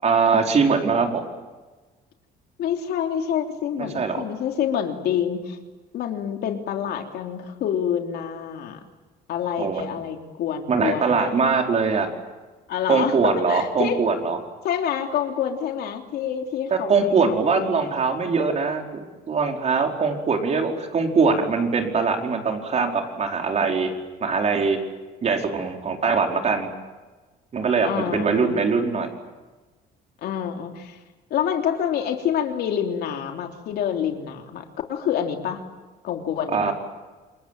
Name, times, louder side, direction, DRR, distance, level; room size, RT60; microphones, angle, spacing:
voice 1, 0.0-1.3 3.8-4.2 9.6-9.9 10.7-12.1 12.9-14.4 16.7-23.9 24.2-24.8 25.2-26.7 27.5-29.2 36.5-36.7, right 5 dB, 40° right, 3 dB, 4.9 m, -22 dB
voice 2, 2.6-5.6 5.9-8.8 9.3-11.4 12.7-14.0 14.6-18.0 27.8-28.6 30.2-31.0 31.3-35.6 36.0-36.7, left 9 dB, 70° left, 4 dB, 3.4 m, -27 dB
28.0 x 22.0 x 9.3 m, 1.3 s
cardioid pair, 110°, 17 cm